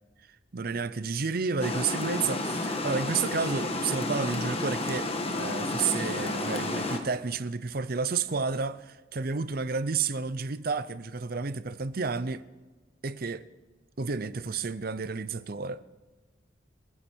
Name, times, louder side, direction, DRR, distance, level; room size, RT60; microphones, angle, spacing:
voice 1, 0.5-12.4 13.0-13.5 14.0-15.8, right 5 dB, 50° right, 0.6 m, -31 dB
Water, 1.6-7.0, left 2 dB, 30° left, 1.3 m, -31 dB
27.5 x 10.0 x 4.5 m
head